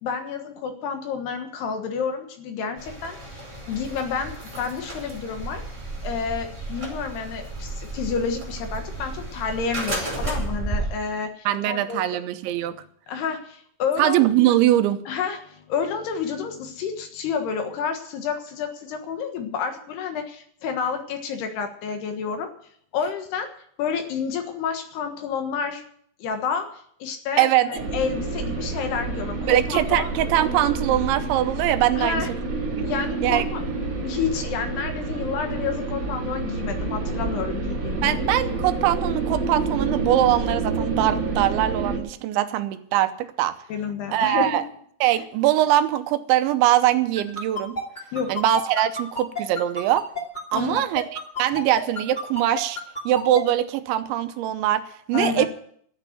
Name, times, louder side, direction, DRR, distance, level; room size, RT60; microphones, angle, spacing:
voice 1, 0.0-3.2 3.7-5.6 6.0-12.0 13.1-14.2 15.1-22.5 22.9-23.5 23.8-25.8 26.2-26.7 27.0-30.1 32.0-32.3 32.8-33.7 34.0-38.2 43.7-44.6 48.1-48.4 50.5-50.8 55.1-55.5, left 6 dB, 70° left, 6 dB, 3.2 m, -29 dB
sound 1, 2.8-10.9, right 2 dB, 5° right, 4.5 m, -33 dB
voice 2, 11.5-12.8 14.0-15.0 27.4-27.8 29.5-32.2 32.8-32.9 33.2-33.4 38.0-43.6 44.1-44.6 45.0-47.8 48.3-50.1 50.5-51.0 51.4-52.8 53.1-55.5, right 13 dB, 85° right, 10 dB, 3.1 m, -22 dB
sound 2, 27.8-42.0, right 3 dB, 35° right, 2.6 m, -28 dB
sound 3, 47.1-53.4, left 1 dB, 15° left, 1.6 m, -29 dB
13.0 x 8.5 x 9.2 m, 0.64 s
omnidirectional pair, 5.3 m